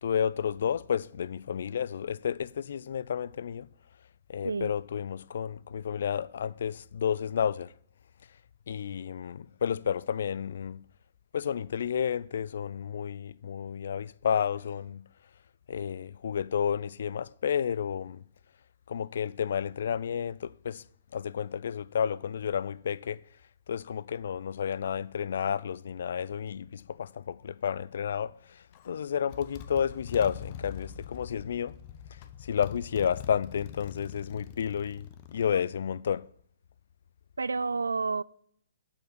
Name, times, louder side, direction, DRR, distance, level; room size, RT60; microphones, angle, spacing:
voice 1, 0.0-3.7 4.3-7.7 8.7-10.8 11.3-15.0 15.7-18.2 18.9-20.8 21.1-23.2 23.7-31.8 32.4-36.3, left 8 dB, 60° left, 0.4 m, -31 dB
Motorcycle, 28.7-28.9 29.3-35.5, left 9 dB, 40° left, 0.9 m, -44 dB
voice 2, 37.4-38.2, right 4 dB, 80° right, 0.3 m, -29 dB
7.6 x 7.1 x 6.3 m
figure-of-eight pair, 125°, 0 cm